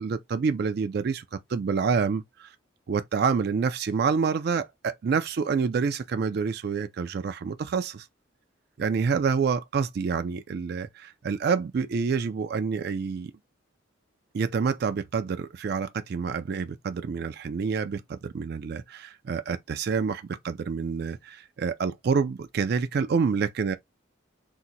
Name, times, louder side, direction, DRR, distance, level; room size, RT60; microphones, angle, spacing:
voice 1, 0.0-2.5 2.9-8.1 8.8-13.3 14.3-23.8, right 5 dB, 50° right, 0.3 m, -27 dB
2.8 x 2.1 x 3.8 m
head